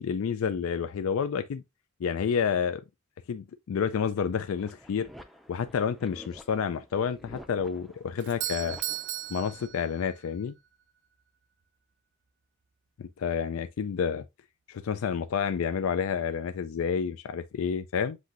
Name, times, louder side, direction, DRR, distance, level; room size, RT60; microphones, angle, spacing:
voice 1, 0.0-1.6 2.0-2.8 3.3-5.1 5.5-8.8 9.3-10.6 13.0-14.3 14.7-18.2, left 7 dB, 85° left, 0.4 m, -29 dB
sound 1, 4.5-9.7, equal, ahead, 0.4 m, -51 dB
Doorbell, 8.2-10.3, right 13 dB, 60° right, 0.5 m, -36 dB
7.5 x 2.7 x 2.5 m
head